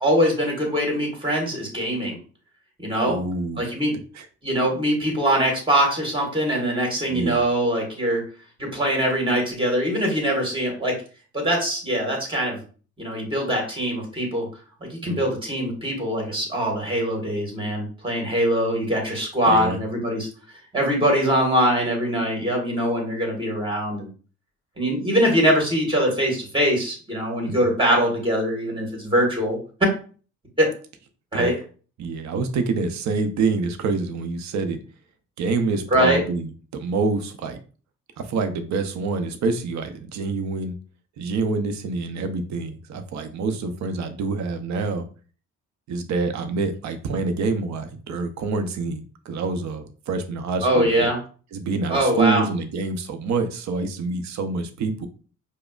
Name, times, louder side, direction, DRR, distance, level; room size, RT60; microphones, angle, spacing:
voice 1, 0.0-2.2 2.8-3.2 3.6-3.9 4.4-8.2 8.6-10.9 11.3-12.6 13.0-14.5 14.8-20.3 20.7-24.1 24.8-29.6 30.6-30.7 31.3-31.5 35.9-36.2 50.6-51.2 51.9-52.4, equal, 15° right, 0 dB, 1.6 m, -22 dB
voice 2, 3.0-3.7 4.1-4.3 7.1-7.4 15.0-15.2 19.5-19.8 27.5-27.7 31.3-31.5 32.0-34.8 35.4-37.6 38.2-40.7 41.2-45.0 45.9-51.1 51.5-55.1, right 4 dB, 65° right, 8 dB, 0.6 m, -26 dB
5.0 x 2.0 x 2.4 m, 0.39 s
cardioid pair, 90°, 30 cm